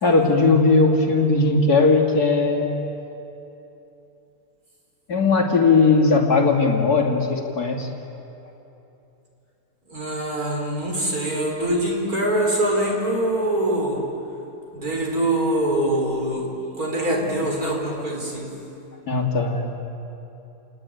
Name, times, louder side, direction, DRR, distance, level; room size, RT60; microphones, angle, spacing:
voice 1, 0.0-2.8 5.1-7.9 19.1-19.7, left 3 dB, 65° left, 1 dB, 3.1 m, -18 dB
voice 2, 9.9-14.0 14.7-16.5 16.8-18.5, right 1 dB, 55° right, -1 dB, 5.6 m, -23 dB
29.5 x 19.5 x 9.3 m, 2.9 s
omnidirectional pair, 1.8 m